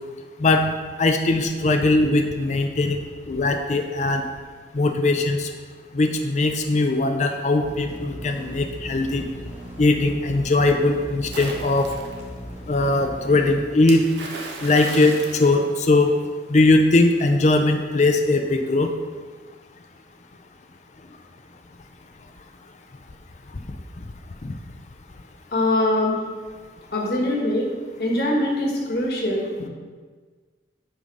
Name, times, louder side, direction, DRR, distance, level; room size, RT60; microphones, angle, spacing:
voice 1, 1.0-3.0 3.3-4.3 4.7-5.5 5.9-9.2 9.8-11.9 12.7-14.0 14.6-16.1 16.5-18.9 24.4-24.5, left 2 dB, 40° left, 5 dB, 0.5 m, -20 dB
sound 1, 7.6-13.5, equal, 10° right, 1.0 m, -38 dB
Splash splatter, 11.3-12.2 13.9-16.3, right 2 dB, 75° right, 1.0 m, -36 dB
voice 2, 25.5-26.2 26.9-27.7 28.0-29.7, left 1 dB, 55° left, -1 dB, 1.4 m, -23 dB
8.0 x 3.9 x 5.3 m, 1.5 s
head